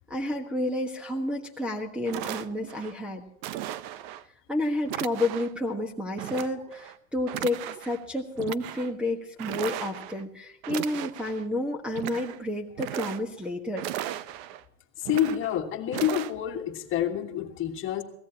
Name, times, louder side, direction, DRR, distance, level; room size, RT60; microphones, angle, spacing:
voice 1, 0.1-3.2 4.5-13.9, left 1 dB, 5° right, -3 dB, 1.3 m, -30 dB
sound 1, 1.6-1.7 2.1-2.9 3.4-4.2 4.9-5.6 6.2-7.0 7.3-8.0 8.4-8.9 9.4-10.2 10.6-11.4 11.8-12.4 12.7-13.5 13.8-14.6 15.0-15.6 15.9-16.3, right 13 dB, 45° right, 0.8 m, -36 dB
voice 2, 15.0-18.0, left 10 dB, 30° left, 5 dB, 1.8 m, -28 dB
23.0 x 16.5 x 2.9 m, 0.72 s
hypercardioid pair, 130°, 42 cm